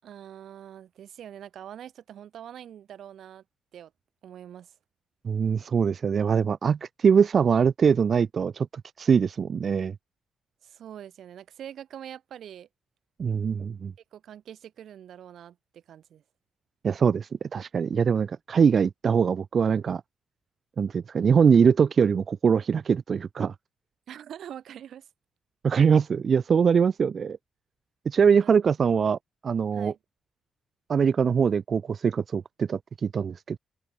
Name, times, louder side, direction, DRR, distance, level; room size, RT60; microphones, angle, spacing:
voice 1, 0.0-3.4 3.7-3.9 4.2-4.7 10.6-12.7 14.1-16.2 24.1-25.1 28.2-28.5 29.7-30.0, right 10 dB, 70° right, 5.2 m, -44 dB
voice 2, 5.2-8.7 9.0-9.9 13.2-13.9 16.8-20.0 20.8-23.5 25.6-27.4 28.0-29.9 30.9-33.6, right 6 dB, 45° right, 0.8 m, -23 dB
cardioid pair, 125°, 0 cm